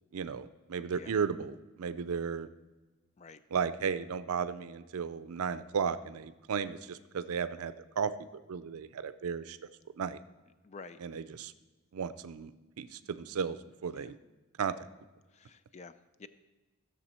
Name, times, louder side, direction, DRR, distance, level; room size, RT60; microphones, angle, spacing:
voice 1, 0.1-2.5 3.5-8.1 8.5-9.6 10.0-10.2 11.0-11.5 11.9-14.2 14.6-14.7, right 6 dB, 85° right, 13 dB, 0.4 m, -34 dB
voice 2, 10.6-11.0 13.9-14.1 15.3-16.3, left 4 dB, 30° left, 13 dB, 0.4 m, -50 dB
14.5 x 6.7 x 4.3 m, 1.2 s
head